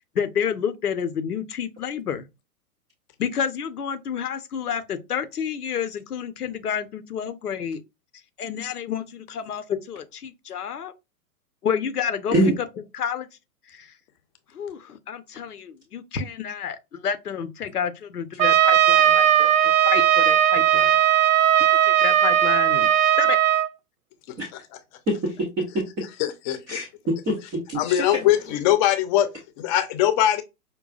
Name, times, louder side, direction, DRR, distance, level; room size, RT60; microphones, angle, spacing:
voice 1, 0.1-2.3 3.2-7.8 8.4-10.9 11.6-12.4 12.9-13.3 13.7-13.9 14.5-21.0 21.8-23.4, left 7 dB, 90° left, 0.8 m, -29 dB
Trumpet, 18.4-23.7, right 11 dB, 65° right, 0.6 m, -18 dB
voice 2, 25.1-25.5 25.7-25.8 26.7-28.0, right 1 dB, 10° right, 0.3 m, -24 dB
voice 3, 26.2-26.6 27.8-29.3 29.6-30.4, left 12 dB, 30° left, 0.6 m, -21 dB
5.3 x 2.2 x 2.3 m
hypercardioid pair, 115°, 44 cm